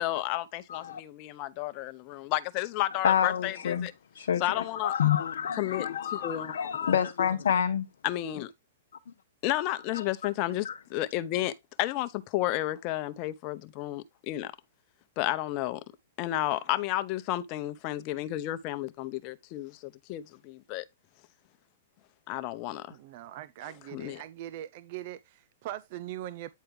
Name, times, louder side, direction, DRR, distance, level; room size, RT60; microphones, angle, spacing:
voice 1, 0.0-3.9 4.4-4.9 5.6-7.0 8.0-8.5 9.4-14.5 15.2-15.8 16.2-20.8 22.3-22.9 23.9-24.2, left 15 dB, 40° left, 0.9 m, -32 dB
voice 2, 0.7-1.0 3.0-3.9 4.1-7.9 9.9-10.0 10.6-10.8, left 8 dB, 70° left, 0.7 m, -28 dB
voice 3, 22.9-26.5, right 13 dB, 50° right, 0.5 m, -41 dB
9.3 x 4.4 x 3.4 m
hypercardioid pair, 115°, 0 cm